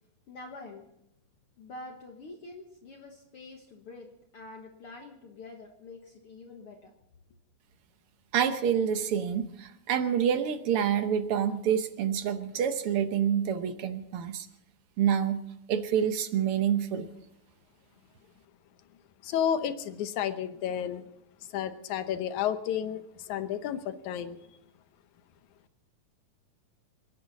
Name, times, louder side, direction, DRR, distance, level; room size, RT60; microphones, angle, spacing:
voice 1, 0.3-0.9 1.6-6.9, left 2 dB, 55° left, 1 dB, 2.0 m, -46 dB
voice 2, 8.3-14.5 15.0-15.4 15.7-17.1, right 8 dB, 65° right, 9 dB, 1.4 m, -27 dB
voice 3, 19.2-21.1 21.5-24.4, left 9 dB, 75° left, 10 dB, 2.3 m, -31 dB
29.0 x 10.5 x 4.1 m, 0.80 s
omnidirectional pair, 3.5 m